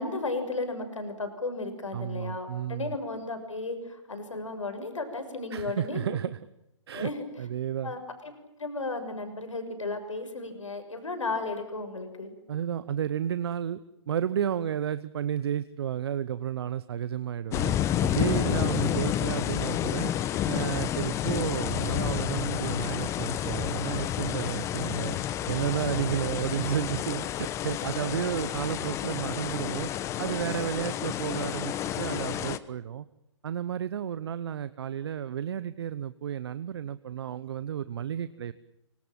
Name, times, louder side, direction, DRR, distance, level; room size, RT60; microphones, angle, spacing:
voice 1, 0.0-6.2 6.9-7.1 7.8-8.3 8.6-12.3, left 3 dB, 85° left, 8 dB, 6.5 m, -34 dB
voice 2, 1.9-3.0 5.5-6.4 6.9-7.1 7.4-7.9 12.5-13.8 14.1-17.7 18.0-20.1 20.4-25.2 25.5-29.9 30.2-33.1 33.4-38.5, right 9 dB, 55° right, 14 dB, 1.0 m, -32 dB
sound 1, 17.5-32.6, left 11 dB, 20° left, 1.1 m, -30 dB
25.5 x 25.0 x 7.6 m, 0.87 s
hypercardioid pair, 135°, 16 cm